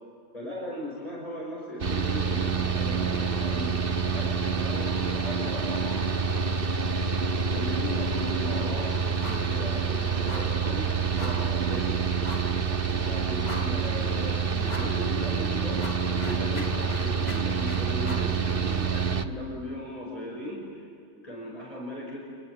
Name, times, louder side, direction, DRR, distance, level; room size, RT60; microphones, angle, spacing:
voice 1, 0.3-5.9 7.3-8.9 9.2-10.9 11.2-12.0 12.9-22.2, equal, 30° left, -3 dB, 5.9 m, -38 dB
Mechanical fan, 1.8-19.2, right 5 dB, 50° right, 1.4 m, -27 dB
sound 1, 9.2-9.5 9.8-9.9 10.3-10.6 11.2-11.5 12.2-12.6 13.0-13.1 13.4-14.0 14.7-15.0 15.4-18.3, left 1 dB, 75° left, 3.2 m, -40 dB
28.0 x 21.5 x 8.7 m, 2.4 s
omnidirectional pair, 1.2 m